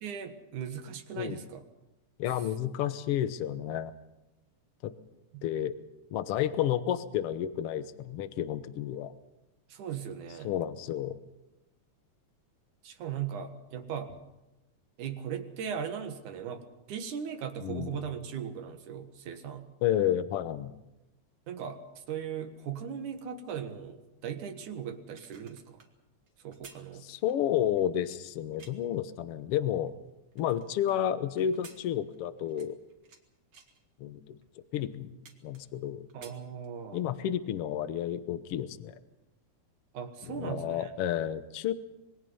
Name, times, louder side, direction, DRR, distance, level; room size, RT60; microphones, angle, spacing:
voice 1, 0.0-1.6 5.3-5.4 9.7-10.5 12.8-14.1 15.0-19.7 21.5-25.8 26.4-27.1 36.1-37.0 39.9-40.9, right 8 dB, 85° right, 7 dB, 3.1 m, -38 dB
voice 2, 2.2-3.9 4.8-4.9 5.4-5.7 6.1-9.1 10.4-11.2 17.6-18.0 19.8-20.7 27.0-29.9 30.4-32.8 34.0-34.4 34.7-35.1 35.4-36.0 36.9-39.0 40.3-41.7, left 10 dB, 60° left, 12 dB, 1.7 m, -31 dB
sound 1, 25.0-29.0 29.5-31.0 31.4-33.2 33.5-33.8 34.4-34.5 34.8-35.8 36.1-37.1 37.5-37.6, right 5 dB, 45° right, 2.5 m, -56 dB
26.0 x 22.0 x 5.6 m, 0.96 s
omnidirectional pair, 3.4 m